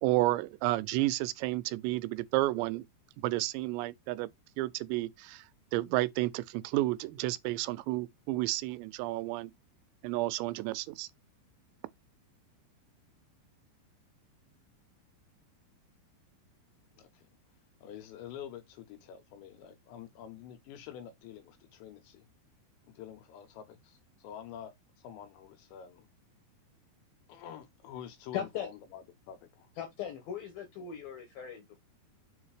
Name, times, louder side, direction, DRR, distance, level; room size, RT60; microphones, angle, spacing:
voice 1, 0.0-2.8 3.2-4.3 4.6-5.4 5.7-9.5 10.0-11.1, right 18 dB, 90° right, 2.8 m, -31 dB
voice 2, 17.0-17.3 17.8-22.3 22.8-24.7 25.0-26.1 27.3-29.7, left 9 dB, 85° left, 3.5 m, -47 dB
voice 3, 28.3-28.7 29.8-31.8, left 9 dB, 70° left, 2.4 m, -38 dB
6.9 x 2.8 x 4.8 m
omnidirectional pair, 5.0 m